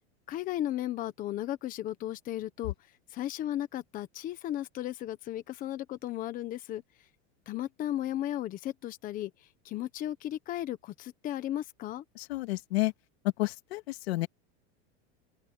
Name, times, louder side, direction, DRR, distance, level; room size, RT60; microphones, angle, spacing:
voice 1, 0.3-2.7 3.1-6.8 7.5-12.0, left 13 dB, 25° left, 1.3 m, -35 dB
voice 2, 12.2-12.9 13.4-14.3, left 20 dB, 65° left, 2.4 m, -31 dB
open air
supercardioid pair, 165°, 34 cm